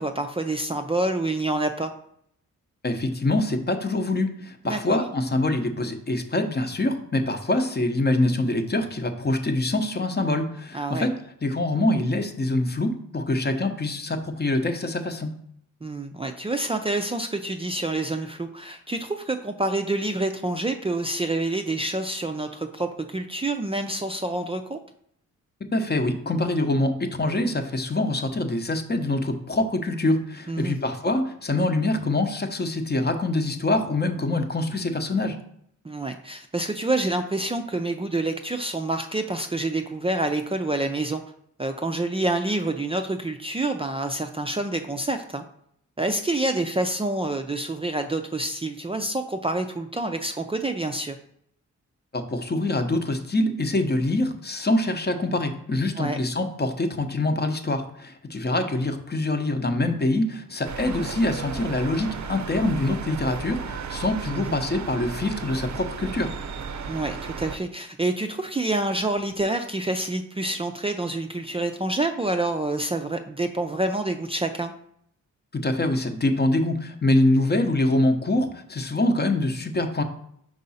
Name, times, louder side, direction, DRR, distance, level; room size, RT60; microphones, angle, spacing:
voice 1, 0.0-1.9 4.7-5.0 10.7-11.1 15.8-24.8 30.5-30.8 35.8-41.2 41.6-45.4 46.0-51.2 56.0-56.2 58.5-58.6 64.3-64.6 66.9-74.7, right 2 dB, 20° right, 5 dB, 0.5 m, -27 dB
voice 2, 2.8-11.1 11.4-15.3 25.7-35.4 52.1-66.3 75.5-80.0, left 2 dB, 30° left, 6 dB, 0.8 m, -25 dB
sound 1, 60.6-67.6, right 5 dB, 60° right, 0.6 m, -34 dB
5.2 x 4.7 x 4.1 m, 0.70 s
cardioid pair, 75°, 32 cm